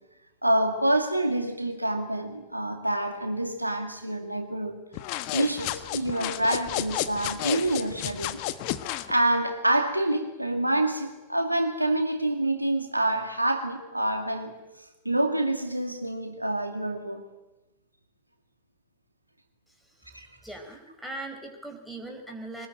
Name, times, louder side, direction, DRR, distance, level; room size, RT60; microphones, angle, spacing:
voice 1, 0.4-4.8 5.3-8.4 9.1-14.6 15.0-17.2 20.1-20.3, right 1 dB, 85° right, 2.3 m, -27 dB
sound 1, 4.9-9.1, left 14 dB, 45° left, 1.4 m, -32 dB
voice 2, 20.4-22.7, right 2 dB, ahead, 4.6 m, -39 dB
24.0 x 20.5 x 9.2 m
figure-of-eight pair, 90°, 0 cm